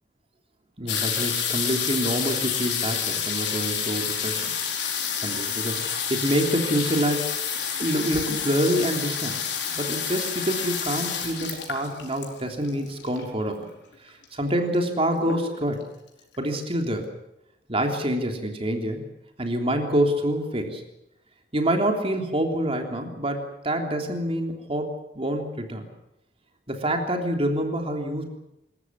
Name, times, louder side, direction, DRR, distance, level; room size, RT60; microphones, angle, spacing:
voice 1, 0.8-4.5 5.2-7.3 7.8-9.4 9.7-13.7 14.0-15.8 16.4-17.1 17.7-19.1 19.4-20.8 21.5-25.9 26.7-28.2, right 1 dB, 35° right, 4 dB, 3.4 m, -26 dB
sound 1, 0.9-13.4 14.2-14.3 14.5-14.9 15.2-15.8 16.3-16.4 16.6-16.7, left 7 dB, 75° left, 4.8 m, -29 dB
27.5 x 14.5 x 9.7 m, 0.86 s
head